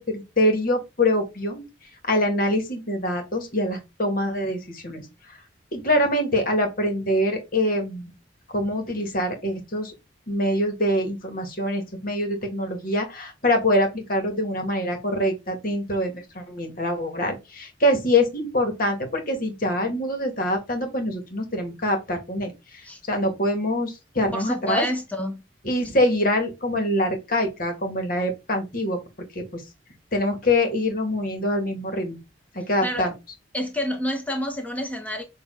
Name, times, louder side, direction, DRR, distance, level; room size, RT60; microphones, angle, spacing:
voice 1, 0.0-1.6 2.1-5.1 5.7-8.1 8.5-9.9 10.3-22.8 23.1-24.8 25.6-29.0 29.4-29.6 30.1-32.2 32.5-33.1, left 1 dB, 50° left, 2.3 m, -24 dB
voice 2, 24.3-25.4 32.8-33.1 33.5-35.2, equal, 10° left, 1.4 m, -28 dB
7.2 x 3.4 x 4.0 m
head